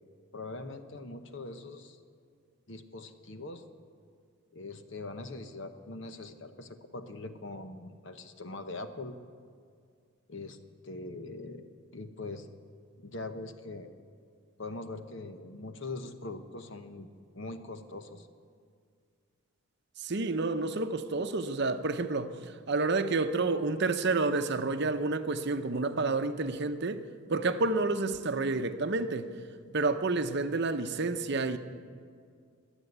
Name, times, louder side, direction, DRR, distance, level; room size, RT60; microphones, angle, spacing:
voice 1, 0.3-2.0 2.7-3.6 4.5-9.1 10.3-10.6 10.8-11.6 11.9-12.5 13.0-13.9 14.6-17.1 17.3-18.3, left 2 dB, 55° left, 1.0 m, -42 dB
voice 2, 20.0-27.0 27.3-29.3 29.7-31.6, right 3 dB, 50° right, 0.7 m, -29 dB
22.0 x 8.2 x 8.0 m
head